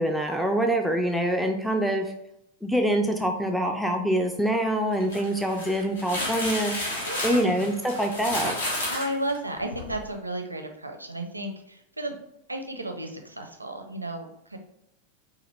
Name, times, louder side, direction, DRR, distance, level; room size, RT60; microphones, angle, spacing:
voice 1, 0.0-2.1 2.6-8.6, right 1 dB, ahead, 3 dB, 0.4 m, -25 dB
sound 1, 4.9-10.0, left 1 dB, 65° left, 1.2 m, -32 dB
voice 2, 7.0-7.6 8.9-12.1 12.5-14.6, right 1 dB, 85° right, 5 dB, 0.5 m, -33 dB
4.7 x 2.4 x 3.0 m, 0.81 s
figure-of-eight pair, 90°, 0 cm